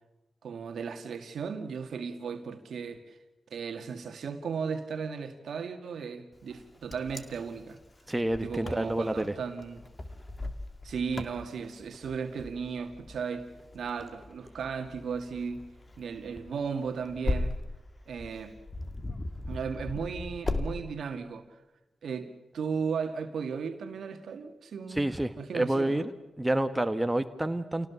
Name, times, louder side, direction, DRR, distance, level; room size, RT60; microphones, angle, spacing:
voice 1, 0.4-3.2 3.5-7.8 8.4-9.8 10.8-13.5 13.7-15.6 16.0-17.6 18.1-18.5 19.5-21.4 22.0-22.3 22.5-26.1, right 6 dB, 70° right, 7 dB, 2.0 m, -35 dB
Wind, 6.5-20.7, left 2 dB, 35° left, 2.4 m, -38 dB
voice 2, 8.1-9.3 24.9-26.1 26.4-27.9, right 1 dB, 15° right, 9 dB, 1.5 m, -28 dB
28.0 x 18.5 x 7.1 m, 1.1 s
supercardioid pair, 40°, 0 cm